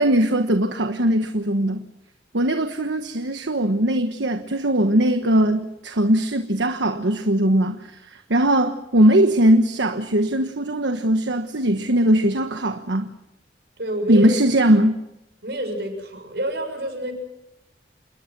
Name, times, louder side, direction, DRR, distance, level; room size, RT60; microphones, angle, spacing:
voice 1, 0.0-1.8 2.3-13.1 14.1-14.9, right 1 dB, 85° right, 6 dB, 1.3 m, -20 dB
voice 2, 13.8-14.4 15.4-17.1, right 1 dB, 65° right, 6 dB, 6.8 m, -28 dB
28.5 x 21.0 x 6.1 m, 0.88 s
head